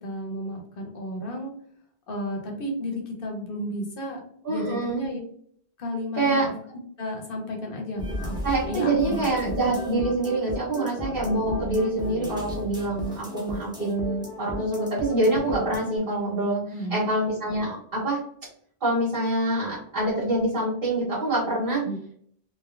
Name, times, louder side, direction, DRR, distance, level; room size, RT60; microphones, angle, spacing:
voice 1, 0.0-1.5 2.1-4.2 4.5-5.2 5.8-6.5 7.0-8.4 8.7-9.5 16.7-17.1 21.8-22.0, equal, 60° left, 1 dB, 0.9 m, -32 dB
voice 2, 4.4-5.0 6.2-6.5 8.4-16.6 16.9-18.2 18.8-21.8, right 2 dB, 60° right, -9 dB, 1.4 m, -25 dB
sound 1, 8.0-16.0, left 1 dB, 5° right, 0.5 m, -35 dB
3.2 x 2.2 x 2.4 m, 0.63 s
omnidirectional pair, 1.1 m